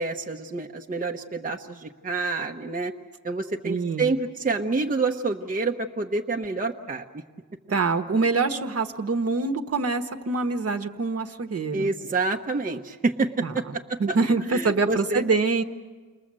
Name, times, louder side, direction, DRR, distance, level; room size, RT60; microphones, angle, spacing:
voice 1, 0.0-2.9 3.2-7.2 11.7-13.6 13.9-14.2 14.5-15.2, right 3 dB, 25° right, 1 dB, 1.0 m, -28 dB
voice 2, 3.6-4.1 7.7-11.9 13.4-13.5 14.0-15.6, right 4 dB, 45° right, 6 dB, 1.3 m, -25 dB
29.5 x 22.0 x 7.6 m, 1.4 s
wide cardioid pair, 150°, 32 cm